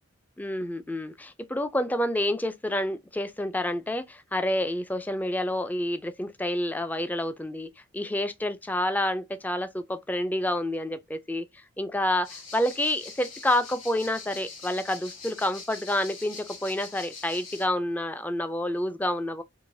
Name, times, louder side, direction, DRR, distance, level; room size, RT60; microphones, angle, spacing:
voice 1, 0.4-19.4, left 1 dB, 10° left, 0.3 m, -29 dB
sound 1, 12.2-17.7, left 4 dB, 80° left, 2.2 m, -43 dB
4.6 x 2.8 x 2.6 m
head